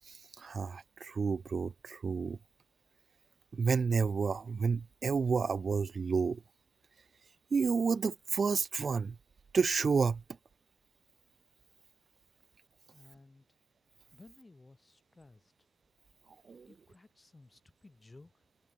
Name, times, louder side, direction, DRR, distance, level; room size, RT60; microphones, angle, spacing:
voice 1, 0.4-2.4 3.5-6.4 7.5-9.1 9.5-10.2 16.5-16.7, right 5 dB, 45° right, 0.3 m, -30 dB
voice 2, 12.9-13.5 14.1-15.5 16.7-18.4, left 2 dB, 25° left, 3.3 m, -58 dB
supercardioid pair, 60°, 0 cm